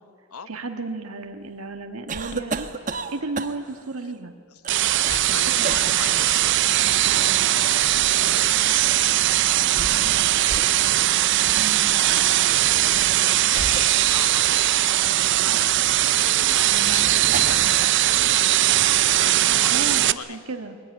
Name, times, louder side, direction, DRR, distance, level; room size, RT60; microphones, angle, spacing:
voice 1, 0.5-2.7 3.1-4.3 5.3-6.1 11.5-11.9 16.7-17.1 19.7-20.8, right 3 dB, 80° right, 5 dB, 1.5 m, -34 dB
sound 1, 2.1-3.8 4.6-5.4 5.6-6.0 7.1-8.1 9.6-10.2 10.5-10.7 11.3-11.5 12.6-12.8 13.5-14.8 15.3-17.8 18.1-18.8, right 4 dB, 35° right, 1.2 m, -34 dB
voice 2, 4.5-10.5 12.7-12.9 13.4-15.8 16.2-18.3 19.1-20.4, left 7 dB, 85° left, 13 dB, 0.9 m, -41 dB
sound 2, 4.7-20.1, right 13 dB, 55° right, 0.6 m, -20 dB
sound 3, 11.2-18.1, left 1 dB, 65° left, 5.9 m, -49 dB
22.0 x 20.5 x 9.9 m, 2.1 s
head